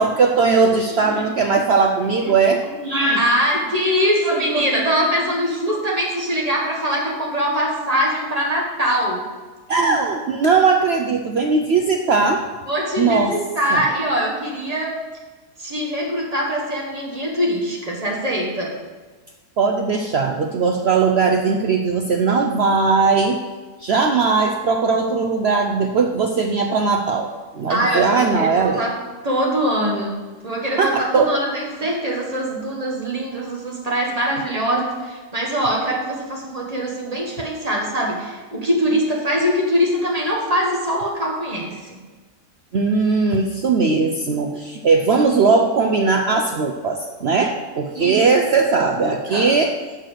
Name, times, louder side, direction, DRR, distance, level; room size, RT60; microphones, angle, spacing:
voice 1, 0.0-2.6 9.7-12.4 13.0-13.3 13.7-13.8 19.6-23.4 23.8-27.3 27.5-28.8 30.8-31.3 42.7-49.7, right 4 dB, 75° right, 3 dB, 0.6 m, -19 dB
voice 2, 0.6-1.2 2.3-2.4 2.8-9.2 12.7-15.0 15.6-18.7 27.7-42.0 47.9-48.2 49.0-49.6, equal, 25° right, -2 dB, 1.5 m, -23 dB
6.5 x 6.0 x 6.5 m, 1.3 s
omnidirectional pair, 1.7 m